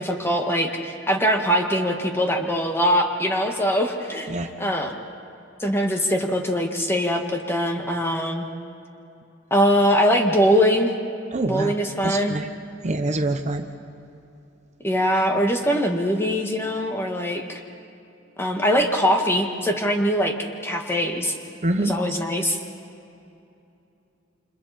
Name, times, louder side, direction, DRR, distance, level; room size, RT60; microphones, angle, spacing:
voice 1, 0.0-4.3 4.6-4.9 5.6-8.5 9.5-10.9 11.4-12.4 14.8-17.6 18.4-20.4 20.6-21.4 21.8-22.6, equal, 15° left, 3 dB, 1.8 m, -22 dB
voice 2, 11.3-11.8 12.0-12.5 12.8-13.6 21.6-21.9, right 2 dB, 35° right, 6 dB, 1.0 m, -25 dB
29.5 x 27.0 x 4.3 m, 2.7 s
head